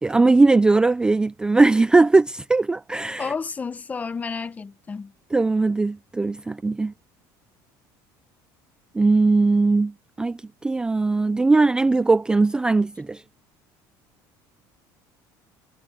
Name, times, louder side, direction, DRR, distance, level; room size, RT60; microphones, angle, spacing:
voice 1, 0.0-3.3 5.3-6.9 8.9-9.9 10.2-13.2, right 3 dB, 10° right, 0.4 m, -19 dB
voice 2, 3.2-5.1, left 5 dB, 15° left, 0.8 m, -31 dB
cardioid pair, 150°, 9 cm